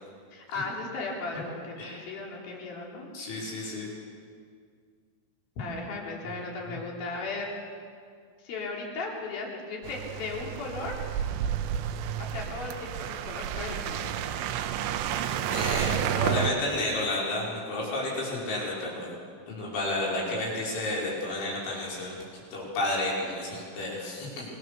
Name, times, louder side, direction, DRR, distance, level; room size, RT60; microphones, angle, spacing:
voice 1, 0.3-3.1 5.6-7.5 8.4-11.0 12.2-14.1, left 3 dB, 50° left, -1 dB, 5.2 m, -36 dB
voice 2, 3.1-3.9 6.7-6.8 15.5-19.1 19.4-22.2 22.5-24.5, left 2 dB, 70° left, -4 dB, 8.0 m, -31 dB
sound 1, 9.8-16.5, right 10 dB, 85° right, 3.4 m, -31 dB
26.0 x 23.5 x 6.9 m, 2.1 s
omnidirectional pair, 5.7 m